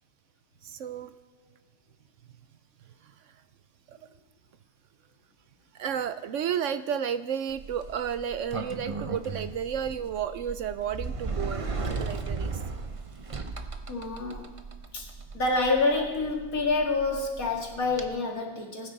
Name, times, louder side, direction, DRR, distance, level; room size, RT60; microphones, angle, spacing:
voice 1, 0.6-1.1 3.0-3.3 3.9-4.0 5.7-11.7 12.0-12.6, right 8 dB, 65° right, 12 dB, 0.9 m, -32 dB
Sliding door, 7.5-18.1, right 4 dB, 30° right, 0.6 m, -36 dB
voice 2, 13.9-14.5 14.9-15.1 15.3-18.9, left 3 dB, 75° left, 0 dB, 2.5 m, -27 dB
21.0 x 9.8 x 4.0 m, 1.1 s
omnidirectional pair, 1.5 m